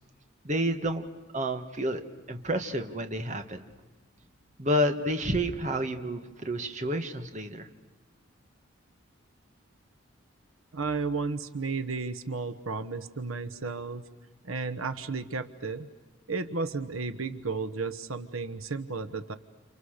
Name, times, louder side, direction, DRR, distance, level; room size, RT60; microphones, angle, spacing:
voice 1, 0.4-1.0 1.3-2.0 2.3-3.6 4.6-7.7, equal, 35° right, 6 dB, 1.8 m, -29 dB
voice 2, 10.7-14.0 14.4-15.9 16.3-19.3, right 4 dB, 85° right, 12 dB, 1.2 m, -33 dB
30.0 x 28.5 x 6.7 m, 1.3 s
head